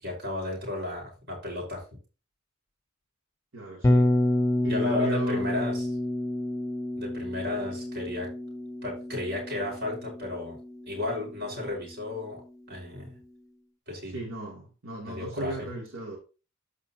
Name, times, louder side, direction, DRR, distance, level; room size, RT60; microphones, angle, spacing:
voice 1, 0.0-1.8 4.6-5.9 7.0-8.3 8.8-10.6 10.9-12.4 12.7-13.1 13.9-14.2 15.0-15.5, left 2 dB, 60° right, 5.1 m, -33 dB
voice 2, 3.5-4.1 4.6-5.5 14.1-16.2, right 2 dB, 90° right, 2.9 m, -36 dB
Bass guitar, 3.8-11.9, left 1 dB, 15° left, 0.8 m, -29 dB
14.0 x 4.9 x 2.9 m
head